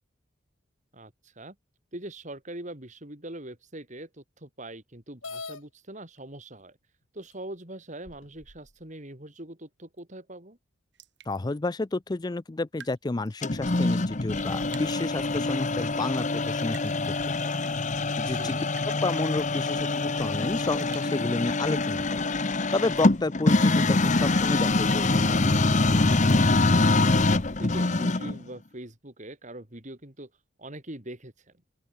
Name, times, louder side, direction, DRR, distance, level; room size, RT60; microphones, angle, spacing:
voice 1, 0.9-1.6 1.9-6.8 7.1-10.6 18.2-18.7 26.3-27.3 27.6-30.3 30.6-31.3, right 1 dB, 35° right, 3.4 m, -42 dB
sound 1, 5.2-5.6 6.6-6.7 7.3-7.4 8.0-8.7, left 4 dB, 80° left, 7.9 m, -40 dB
sound 2, 10.9-11.4 12.7-13.0 13.3-13.4 14.4-15.0 16.0-16.2 16.7-17.1 17.6-17.8 18.8-19.5 20.8-21.2 21.5-21.6 22.6-23.1 24.3-25.5 26.0-26.2, right 9 dB, 60° right, 4.9 m, -49 dB
voice 2, 11.3-17.1 17.4-17.5 18.2-18.5 19.0-22.3 22.7-25.4, left 2 dB, 20° left, 0.4 m, -30 dB
sound 3, 13.4-28.4, left 2 dB, 35° left, 1.0 m, -24 dB
open air
head